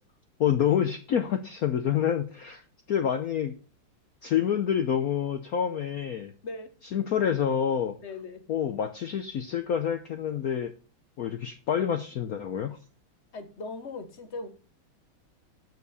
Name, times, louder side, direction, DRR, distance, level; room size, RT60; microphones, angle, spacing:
voice 1, 0.4-2.6 2.9-3.5 4.2-6.3 6.9-8.0 8.5-10.7 11.2-12.8, left 9 dB, 70° left, 0.8 m, -27 dB
voice 2, 6.4-6.7 8.0-8.4 13.3-14.5, left 3 dB, 45° left, 0.9 m, -39 dB
8.3 x 6.9 x 4.1 m
omnidirectional pair, 2.3 m